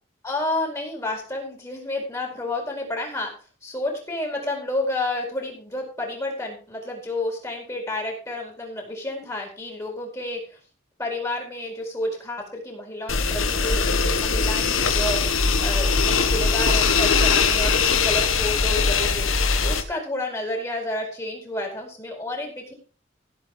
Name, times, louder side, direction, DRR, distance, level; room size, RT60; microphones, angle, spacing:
voice 1, 0.2-10.6 11.0-22.7, left 1 dB, 15° left, 0 dB, 4.8 m, -30 dB
sound 1, 13.1-19.8, left 5 dB, 90° left, 1.8 m, -21 dB
16.0 x 8.1 x 5.1 m, 0.38 s
head